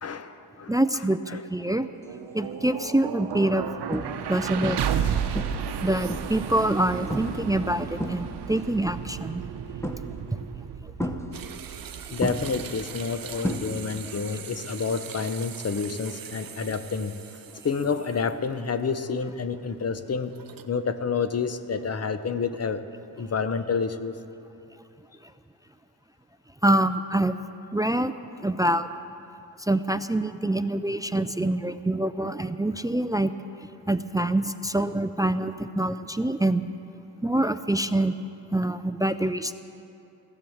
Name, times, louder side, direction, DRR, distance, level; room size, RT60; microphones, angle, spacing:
voice 1, 0.0-0.7 1.3-1.4 12.1-17.2 17.6-20.3 20.7-22.8 23.2-24.2, left 5 dB, 40° left, 11 dB, 0.9 m, -29 dB
voice 2, 0.7-1.9 2.3-4.0 4.3-4.8 5.8-9.4 10.8-10.9 26.6-27.3 27.7-28.1 28.4-28.9 29.6-33.3 33.9-36.6 37.2-38.1 38.5-39.5, right 1 dB, 10° right, 12 dB, 0.4 m, -25 dB
sound 1, 1.8-13.9, right 8 dB, 85° right, 0.9 m, -33 dB
sound 2, 2.3-2.6 3.2-3.3 3.9-4.3 4.6-5.0 5.4-6.5 7.1-7.5 7.8-8.6 9.8-10.3 11.0-11.9 12.2-14.1 14.4-14.8 16.8-16.9, equal, 5° left, 1.1 m, -32 dB
sound 3, 11.3-18.5 18.9-19.0 20.2-20.7, right 8 dB, 60° right, 0.8 m, -42 dB
16.5 x 11.0 x 7.2 m, 2.7 s
cardioid pair, 80°, 39 cm